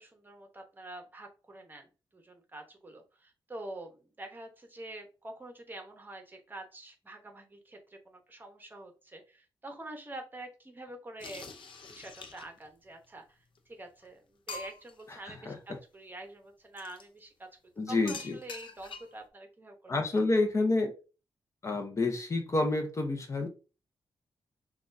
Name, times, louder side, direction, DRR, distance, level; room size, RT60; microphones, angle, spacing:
voice 1, 0.0-1.9 2.1-11.6 11.9-13.4 13.7-17.5 17.9-19.9, right 1 dB, 20° right, 4 dB, 0.9 m, -46 dB
sound 1, 11.2-12.7 13.6-13.7 14.0-14.1 14.5-15.0 16.8-17.0 18.1-19.2, left 4 dB, 70° left, 0.6 m, -45 dB
voice 2, 15.1-15.6 17.8-18.4 19.9-20.9 21.6-23.5, left 2 dB, 35° left, 4 dB, 0.7 m, -29 dB
6.0 x 2.4 x 2.6 m, 0.33 s
wide cardioid pair, 110°, 9 cm